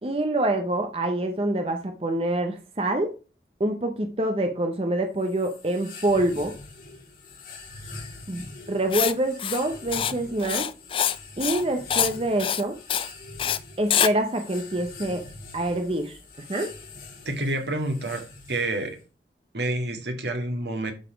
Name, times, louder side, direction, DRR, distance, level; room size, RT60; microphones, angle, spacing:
voice 1, 0.0-3.1 3.6-6.6 8.3-10.7 11.4-12.8 13.8-15.2 15.5-16.2 16.5-16.7, right 1 dB, 35° right, 0.7 m, -26 dB
sound 1, 5.2-19.0, left 3 dB, 55° left, 4.2 m, -44 dB
Writing, 8.9-9.1 9.4-9.6 9.9-10.1 10.4-11.2 11.4-11.6 11.9-12.1 12.4-12.6 12.9-13.1 13.4-13.6 13.9-14.1, left 9 dB, 30° left, 0.4 m, -25 dB
voice 2, 17.3-19.0 19.5-20.9, right 1 dB, 75° right, 1.9 m, -28 dB
11.5 x 4.1 x 5.0 m
head